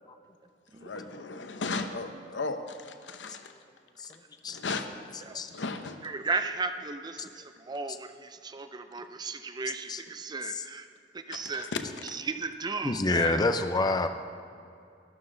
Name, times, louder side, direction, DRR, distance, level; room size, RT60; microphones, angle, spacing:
voice 1, 0.8-3.5 4.5-4.8 5.3-6.0 11.3-12.2, left 3 dB, 85° left, 7 dB, 0.8 m, -36 dB
voice 2, 6.0-10.9 11.1-11.7 12.1-13.4, right 4 dB, 25° right, 9 dB, 0.5 m, -35 dB
voice 3, 12.8-14.1, left 2 dB, 25° left, 8 dB, 0.5 m, -27 dB
12.5 x 11.5 x 3.8 m, 2.4 s
head